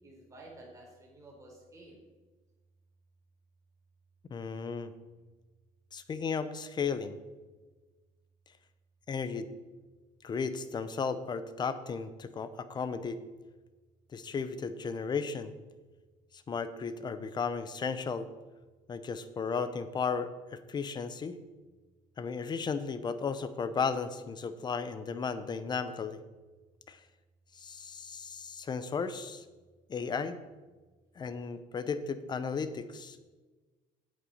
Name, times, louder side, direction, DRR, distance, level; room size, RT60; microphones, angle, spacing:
voice 1, 0.0-2.0, right 1 dB, 20° right, -2 dB, 3.7 m, -53 dB
voice 2, 4.3-4.9 5.9-7.2 9.1-9.5 10.2-13.2 14.1-15.5 16.3-18.3 18.9-21.4 22.2-26.2 26.9-27.0 27.5-29.4 29.9-30.4 31.2-33.2, left 5 dB, 30° left, 12 dB, 0.8 m, -35 dB
8.8 x 8.4 x 5.5 m, 1.3 s
cardioid pair, 125°, 15 cm